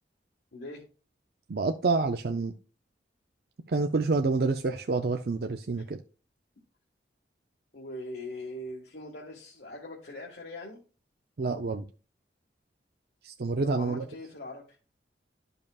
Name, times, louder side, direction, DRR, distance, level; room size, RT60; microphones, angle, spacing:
voice 1, 0.5-0.8 7.7-10.8 13.6-14.6, left 1 dB, 70° left, 1.6 m, -41 dB
voice 2, 1.5-2.5 3.7-6.0 11.4-11.8 13.2-14.1, right 3 dB, 60° right, 0.5 m, -28 dB
12.0 x 5.4 x 2.3 m
head